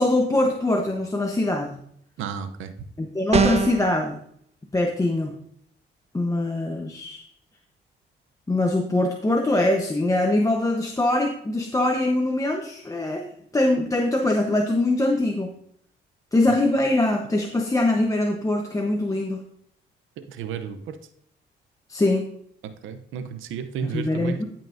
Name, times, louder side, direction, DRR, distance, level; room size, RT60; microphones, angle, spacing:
voice 1, 0.0-1.8 3.0-4.2 4.7-5.3 6.1-7.2 8.5-13.3 13.5-15.5 16.3-19.4 21.9-22.3 23.9-24.4, left 2 dB, 15° left, 2 dB, 0.9 m, -23 dB
voice 2, 2.2-2.7 16.5-16.6 20.3-21.0 22.6-24.4, right 7 dB, 85° right, 10 dB, 0.7 m, -32 dB
sound 1, 3.3-3.9, right 5 dB, 30° right, 0.8 m, -20 dB
14.0 x 5.7 x 2.6 m, 0.67 s
cardioid pair, 90°, 20 cm